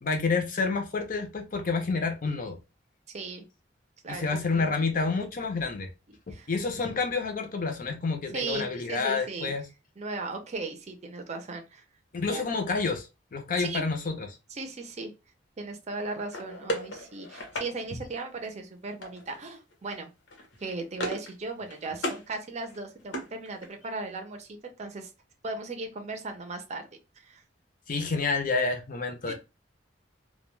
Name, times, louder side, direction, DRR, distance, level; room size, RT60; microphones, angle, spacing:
voice 1, 0.0-2.6 4.1-5.9 6.3-9.6 12.1-14.3 27.9-29.3, left 4 dB, 50° left, 0.6 m, -29 dB
voice 2, 3.1-3.5 4.0-5.1 6.3-6.5 8.3-9.5 10.0-11.8 12.2-12.4 13.6-13.8 14.5-15.1 15.6-20.1 20.6-25.1 25.4-26.9 27.2-27.4 29.3-29.4, right 3 dB, 40° right, 0.5 m, -37 dB
sound 1, 16.3-17.7 19.0-19.4 19.7-20.0 20.3-21.3 21.6-22.2 22.6-23.9, equal, 85° left, 0.8 m, -36 dB
2.2 x 2.2 x 3.0 m
head